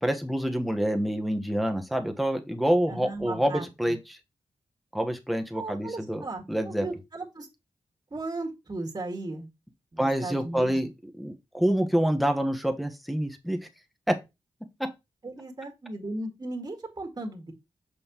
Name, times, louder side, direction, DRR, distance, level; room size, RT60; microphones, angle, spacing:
voice 1, 0.0-4.2 4.9-6.2 6.5-6.9 10.0-10.9 11.2-13.6 14.1-14.2, equal, ahead, 1.3 m, -27 dB
voice 2, 2.9-3.7 5.5-7.5 8.1-9.5 9.9-10.8 15.2-17.5, right 2 dB, 35° right, 2.1 m, -36 dB
6.4 x 5.4 x 3.0 m
cardioid pair, 45°, 11 cm